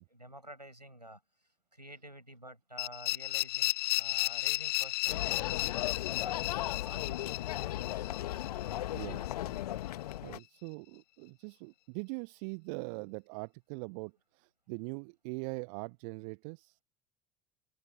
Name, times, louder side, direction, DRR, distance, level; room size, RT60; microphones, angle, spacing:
voice 1, 0.1-6.4 6.8-8.1, right 1 dB, 90° right, 6.9 m, -51 dB
sound 1, 2.8-9.6, left 23 dB, 50° left, 1.2 m, -34 dB
sound 2, 5.1-10.4, left 14 dB, 70° left, 2.0 m, -36 dB
voice 2, 8.6-9.6 10.2-16.8, right 33 dB, 55° right, 1.1 m, -42 dB
figure-of-eight pair, 65°, 21 cm